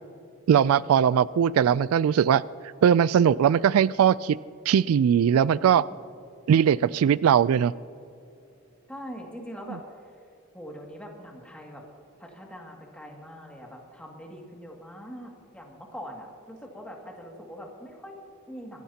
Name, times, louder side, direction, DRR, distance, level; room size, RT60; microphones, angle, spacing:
voice 1, 0.5-2.4 2.8-4.4 4.7-5.8 6.5-7.7, right 8 dB, 80° right, 20 dB, 0.3 m, -20 dB
voice 2, 5.6-6.0 8.9-9.8 10.5-11.8 12.2-18.8, equal, 5° left, -1 dB, 2.2 m, -42 dB
24.0 x 16.5 x 2.9 m, 2.7 s
head